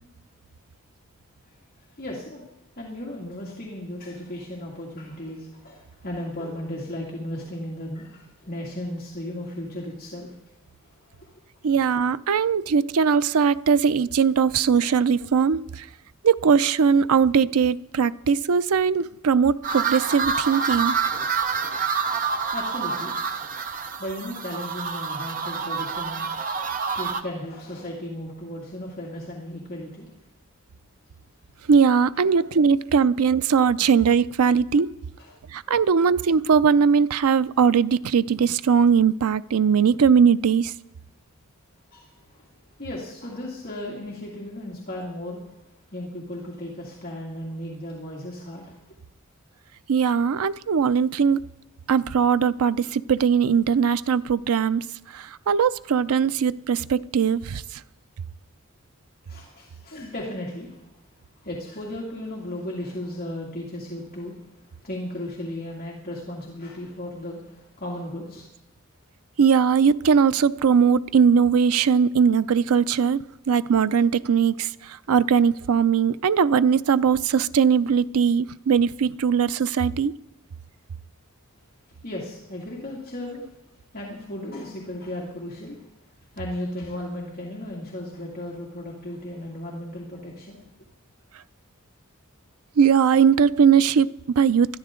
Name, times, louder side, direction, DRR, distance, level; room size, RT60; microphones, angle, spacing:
voice 1, 1.5-2.5 2.8-10.3 10.8-11.4 22.2-23.2 24.0-26.2 26.9-30.1 32.3-32.4 35.2-35.4 36.0-36.1 41.9-42.5 42.8-45.5 45.9-49.0 59.3-61.0 61.4-68.5 82.0-90.7, left 1 dB, 45° left, 2.3 m, -36 dB
voice 2, 11.6-15.8 16.2-20.9 31.7-34.9 35.5-40.7 49.9-51.4 51.9-54.8 55.1-57.8 69.4-80.1 92.8-94.7, right 6 dB, 90° right, 0.5 m, -20 dB
sound 1, 19.6-27.2, right 5 dB, 40° right, 0.8 m, -27 dB
21.0 x 13.0 x 3.8 m
head